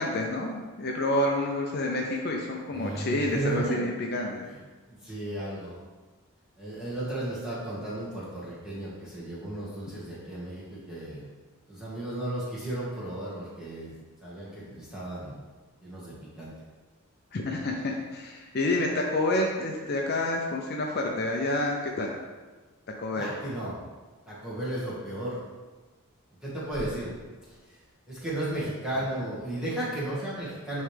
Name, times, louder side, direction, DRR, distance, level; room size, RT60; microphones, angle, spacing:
voice 1, 0.0-4.5 17.3-22.2 23.0-23.4, left 1 dB, 45° left, 0 dB, 0.5 m, -28 dB
voice 2, 2.7-3.9 4.5-4.6 4.9-5.8 6.6-11.2 11.7-13.9 14.2-15.4 15.8-16.5 23.1-23.8 24.3-25.4 26.4-27.1 27.5-27.8 28.1-30.8, right 1 dB, 5° right, -9 dB, 1.7 m, -34 dB
9.3 x 3.2 x 3.4 m, 1.3 s
head